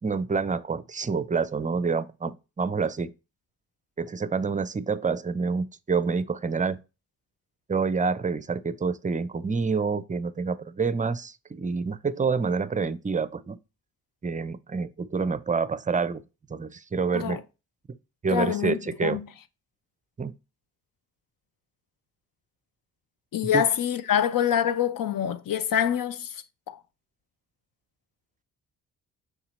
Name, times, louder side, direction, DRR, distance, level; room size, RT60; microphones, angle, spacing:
voice 1, 0.0-3.1 4.0-6.8 7.7-13.6 14.2-16.2 16.5-17.4 18.2-19.2 20.2-20.3 23.5-23.6, right 5 dB, 20° right, 0.6 m, -27 dB
voice 2, 18.3-19.3 23.3-26.8, left 9 dB, 55° left, 0.8 m, -26 dB
5.7 x 3.9 x 4.1 m
hypercardioid pair, 45°, 41 cm